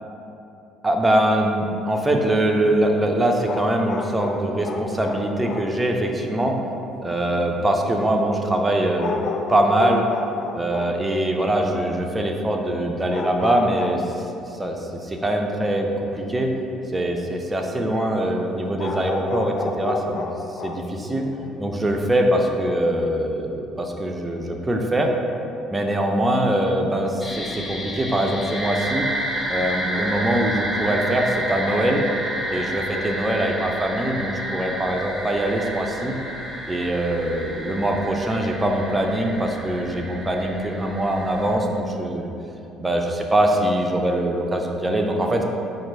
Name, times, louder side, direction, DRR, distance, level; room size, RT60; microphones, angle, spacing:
voice 1, 0.8-6.6 7.0-9.2 9.5-10.1 10.5-14.2 14.5-16.5 16.9-20.3 20.6-21.3 21.6-25.1 25.7-29.1 29.5-32.0 32.5-36.2 36.7-42.3 42.8-45.4, right 1 dB, 20° right, 2 dB, 0.6 m, -23 dB
sound 1, 3.5-5.8 8.9-11.1 13.1-14.2 18.8-21.6, left 4 dB, 60° left, 0.3 m, -32 dB
sound 2, 27.2-41.6, equal, 25° left, 1.0 m, -30 dB
4.4 x 2.5 x 4.4 m, 2.8 s
hypercardioid pair, 65°, 0 cm